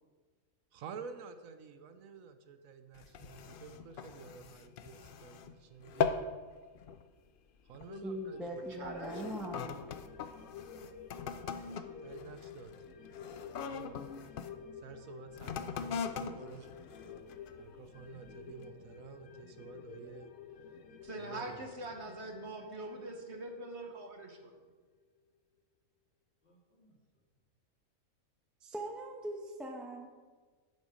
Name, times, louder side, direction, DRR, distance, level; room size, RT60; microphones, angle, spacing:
voice 1, 0.7-6.3 7.6-8.5 12.0-12.7 13.6-14.0 14.7-16.7 17.6-20.3 21.2-21.7, right 6 dB, 75° right, 10 dB, 1.1 m, -50 dB
sound 1, 2.9-5.5 5.8-6.4 6.7-7.1 7.7-8.0 8.7-14.5 15.3-17.7 18.2-18.3, left 6 dB, 60° left, 0.5 m, -40 dB
sound 2, 7.9-24.7 25.0-25.1, left 6 dB, 80° left, 1.2 m, -51 dB
voice 2, 8.0-9.8 28.6-30.1, right 1 dB, ahead, 0 dB, 0.9 m, -41 dB
voice 3, 8.8-9.5 21.0-24.5, right 2 dB, 50° right, 3 dB, 1.4 m, -43 dB
voice 4, 15.5-17.7 26.4-26.9, left 1 dB, 45° left, -2 dB, 2.5 m, -59 dB
11.0 x 7.9 x 5.0 m, 1.4 s
omnidirectional pair, 1.5 m